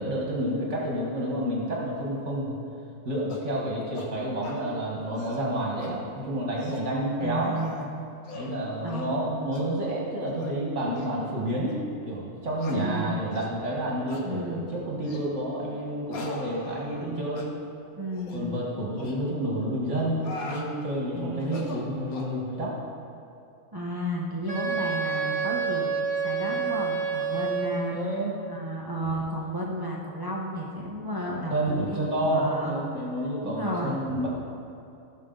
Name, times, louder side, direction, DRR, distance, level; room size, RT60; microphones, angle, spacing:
voice 1, 0.0-2.5 3.0-7.5 8.3-17.5 18.3-22.8 27.9-28.3 31.5-34.3, right 1 dB, 55° right, -4 dB, 1.9 m, -29 dB
sound 1, 3.3-3.5 3.9-4.1 4.4-4.6 5.0-5.4 5.8-5.9 6.4-6.9 7.5-7.8 8.2-8.5 8.9-9.1 9.5-9.7 10.3-10.5 10.9-11.1 11.7-11.8 12.6-12.8 13.3-13.5 14.1-14.3 15.0-15.3 16.1-17.1 17.4-17.5 18.1-18.4 19.0-19.2 20.0-20.7 21.4-22.3, left 3 dB, 90° left, 1.6 m, -41 dB
voice 2, 7.2-7.9 8.8-9.5 12.7-13.2 14.2-14.7 17.0-17.4 18.0-18.6 21.1-22.0 23.7-25.9 26.2-28.0 28.5-32.7 33.4-34.3, equal, 15° right, -3 dB, 1.0 m, -33 dB
Wind instrument woodwind instrument, 24.5-28.0, right 5 dB, 20° left, 2.2 m, -28 dB
15.5 x 6.7 x 3.9 m, 2.7 s
omnidirectional pair, 1.5 m